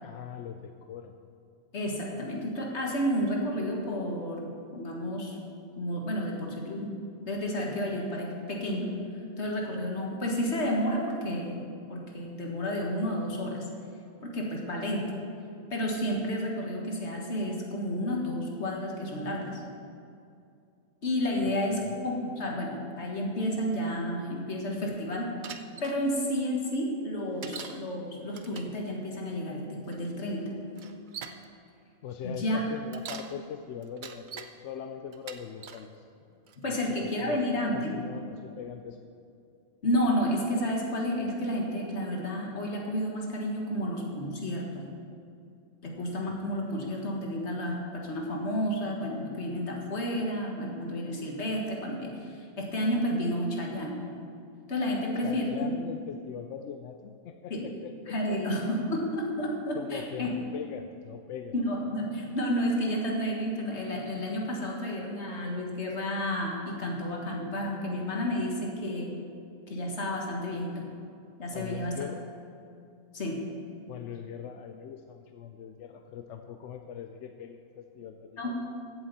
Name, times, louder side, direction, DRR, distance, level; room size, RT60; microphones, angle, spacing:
voice 1, 0.0-1.2 21.7-22.0 32.0-37.4 37.7-39.1 55.0-58.4 59.7-61.6 71.5-72.2 73.9-78.4, left 8 dB, 65° left, 6 dB, 0.8 m, -41 dB
voice 2, 1.7-5.3 5.8-6.9 7.3-8.9 9.4-13.7 14.2-15.2 15.7-19.6 21.0-25.4 25.8-30.5 32.2-32.6 36.6-38.0 39.8-44.8 45.8-54.0 54.7-55.7 57.5-57.7 58.1-60.4 61.5-69.1 69.7-70.9 71.4-71.9 73.1-73.4 78.4-78.6, equal, 50° left, -1 dB, 1.9 m, -31 dB
Bicycle, 25.4-26.0 27.4-27.8 28.3-28.8 29.9-30.0 30.8-31.4 32.7-33.3 33.8-34.5 35.1-35.9 36.5-36.9, right 7 dB, 60° right, 0.5 m, -42 dB
15.5 x 7.8 x 4.1 m, 2.5 s
omnidirectional pair, 1.5 m